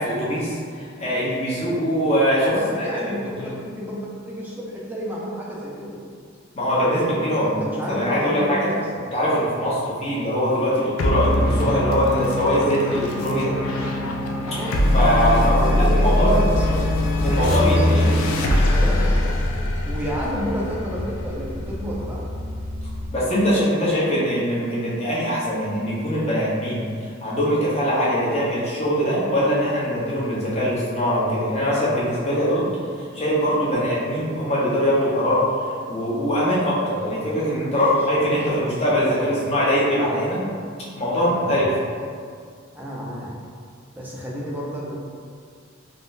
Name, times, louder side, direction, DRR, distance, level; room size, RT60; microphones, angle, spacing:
voice 1, 0.0-3.0 3.4-3.5 6.5-7.6 7.9-8.7 9.1-13.5 14.9-16.3 17.2-18.1 18.4-18.7 23.1-32.7 33.0-35.4 35.9-40.4 40.9-41.6, equal, 30° left, -8 dB, 0.7 m, -22 dB
voice 2, 2.5-6.0 7.4-9.0 14.4-14.7 15.5-16.9 17.2-18.1 18.6-19.4 19.8-22.2 37.7-38.7 39.0-39.5 41.1-41.7 42.7-43.3 43.9-44.9, equal, 10° right, -5 dB, 0.4 m, -31 dB
sound 1, 11.0-21.8, left 1 dB, 85° left, 0.4 m, -22 dB
sound 2, 15.4-23.1, left 1 dB, 40° right, 0.7 m, -35 dB
3.6 x 2.1 x 2.5 m, 2.1 s
head